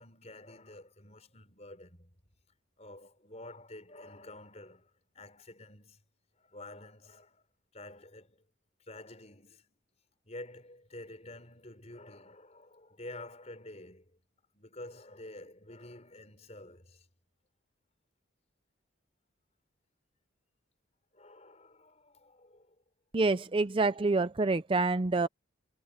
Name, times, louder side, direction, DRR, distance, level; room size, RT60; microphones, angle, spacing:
voice 1, 0.0-2.2 2.8-6.0 6.4-7.4 7.7-8.4 8.9-9.8 10.3-14.1 14.5-17.1 21.1-22.8 25.2-25.3, left 1 dB, 35° left, 5.4 m, -49 dB
voice 2, 23.1-25.3, right 3 dB, 25° right, 0.5 m, -27 dB
head